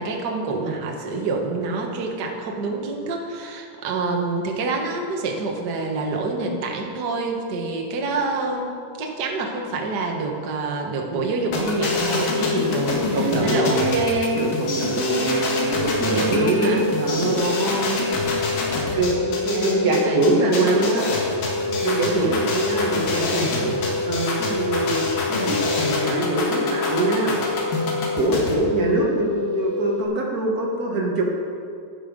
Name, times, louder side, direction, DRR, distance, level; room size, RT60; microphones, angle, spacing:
voice 1, 0.0-14.4 15.0-15.3 16.0-16.9 17.3-18.1 18.7-21.2 21.6-21.8 22.1-22.3, right 3 dB, 55° right, 1 dB, 1.1 m, -27 dB
sound 1, 11.5-28.5, left 3 dB, 75° left, 3.4 m, -27 dB
sound 2, 11.7-30.0, left 3 dB, 10° left, 2.7 m, -27 dB
voice 2, 12.9-14.0 14.3-17.4 18.9-21.1 21.8-27.4 28.2-31.3, right 2 dB, 85° right, -2 dB, 0.8 m, -24 dB
12.0 x 11.0 x 5.3 m, 2.4 s
omnidirectional pair, 3.9 m